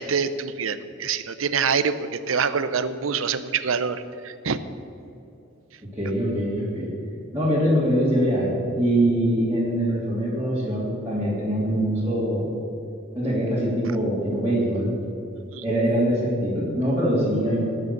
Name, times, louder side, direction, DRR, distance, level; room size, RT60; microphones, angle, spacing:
voice 1, 0.0-4.6 15.5-15.6, right 6 dB, 75° right, 13 dB, 0.7 m, -25 dB
voice 2, 5.8-6.9 7.3-12.5 13.1-14.9 15.6-17.6, right 1 dB, 15° right, -10 dB, 2.9 m, -23 dB
18.5 x 6.6 x 6.7 m, 2.8 s
head